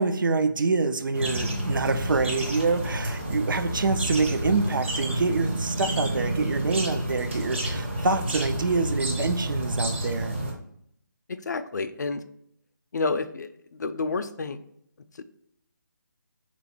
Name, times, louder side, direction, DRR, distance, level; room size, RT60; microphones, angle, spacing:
voice 1, 0.0-10.3, right 3 dB, 75° right, 0.5 m, -26 dB
sound 1, 1.1-10.5, right 1 dB, 35° right, 0.8 m, -29 dB
voice 2, 11.3-12.2 12.9-14.6, left 3 dB, 55° left, 0.4 m, -29 dB
3.4 x 3.0 x 4.1 m
hypercardioid pair, 170°, 11 cm